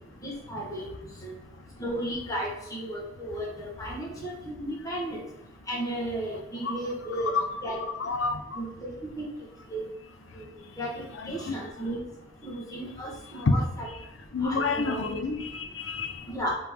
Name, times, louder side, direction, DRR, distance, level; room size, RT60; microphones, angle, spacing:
voice 1, 0.2-0.8 1.2-1.3 1.8-5.2 5.7-7.3 7.6-7.8 8.5-9.3 9.7-9.8 10.3-10.5 10.8-10.9 11.3-12.0 12.4-13.9 14.4-15.0 16.3-16.6, right 1 dB, 20° left, -3 dB, 1.2 m, -34 dB
voice 2, 7.3-8.6 11.1-11.5 13.5-13.6 14.3-16.2, left 4 dB, 65° left, 8 dB, 0.5 m, -29 dB
4.8 x 3.2 x 3.5 m, 0.99 s
head